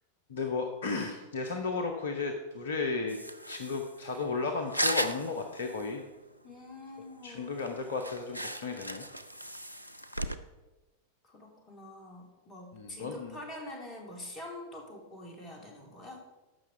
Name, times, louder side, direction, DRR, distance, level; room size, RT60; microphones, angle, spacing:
voice 1, 0.3-3.2 3.5-6.0 7.2-9.0 12.7-13.4, left 4 dB, 60° left, 5 dB, 0.9 m, -34 dB
sound 1, 3.1-6.1 6.3-6.4 6.8-6.9 7.3-7.4 7.6-10.4, equal, 90° left, 0.5 m, -36 dB
voice 2, 6.4-7.7 11.2-16.2, left 1 dB, 25° left, 1 dB, 2.8 m, -45 dB
14.5 x 5.9 x 4.5 m, 1.1 s
figure-of-eight pair, 90°, 0 cm